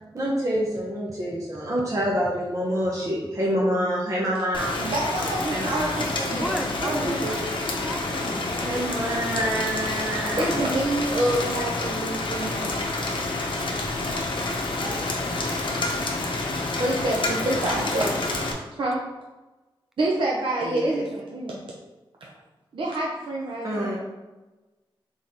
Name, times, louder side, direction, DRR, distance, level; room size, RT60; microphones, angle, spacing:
voice 1, 0.1-4.8 5.5-5.9 8.6-10.5 20.6-21.1 23.6-24.0, equal, 40° right, -4 dB, 0.8 m, -27 dB
Rain, 4.5-18.5, left 2 dB, 65° left, 0.7 m, -28 dB
voice 2, 4.8-7.5 10.4-12.8 13.3-13.5 14.7-15.1 16.8-18.3 18.8-19.0 20.0-21.7 22.2-22.3 22.7-24.0, right 1 dB, 70° right, -3 dB, 0.6 m, -27 dB
voice 3, 6.3-8.5, equal, ahead, 3 dB, 0.5 m, -33 dB
3.5 x 3.5 x 4.1 m, 1.1 s
wide cardioid pair, 135°, 9 cm